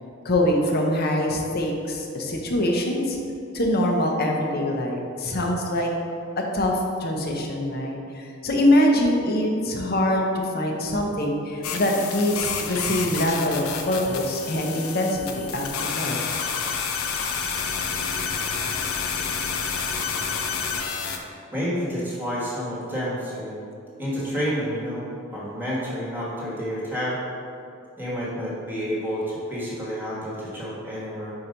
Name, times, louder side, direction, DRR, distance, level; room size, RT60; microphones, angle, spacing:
voice 1, 0.2-3.2 3.5-5.9 6.4-10.3 10.5-16.4, left 1 dB, 50° left, 1 dB, 0.8 m, -24 dB
sound 1, 11.6-21.2, left 6 dB, 90° left, 0.6 m, -29 dB
voice 2, 21.5-23.6 24.0-25.0 25.3-27.2 28.0-31.3, equal, 10° right, -7 dB, 1.3 m, -29 dB
4.8 x 4.4 x 5.1 m, 2.6 s
head